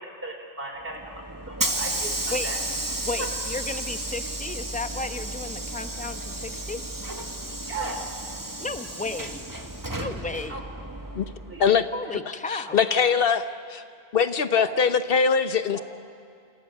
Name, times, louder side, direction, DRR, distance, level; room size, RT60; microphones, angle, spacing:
voice 1, 0.0-2.1 2.4-2.6 7.7-8.0 10.5-10.6 11.5-11.7 12.0-12.1 14.5-14.7 15.7-15.8, right 2 dB, 55° right, 2 dB, 4.4 m, -36 dB
Hiss / Sliding door, 0.9-11.7, right 1 dB, 15° right, 1.5 m, -33 dB
voice 2, 3.1-6.8 8.6-9.4 10.0-10.6 11.9-12.8, left 3 dB, 5° left, 8 dB, 0.9 m, -33 dB
voice 3, 12.5-13.8 14.1-15.8, left 6 dB, 55° left, 11 dB, 1.2 m, -22 dB
28.5 x 27.0 x 6.7 m, 2.5 s
omnidirectional pair, 1.1 m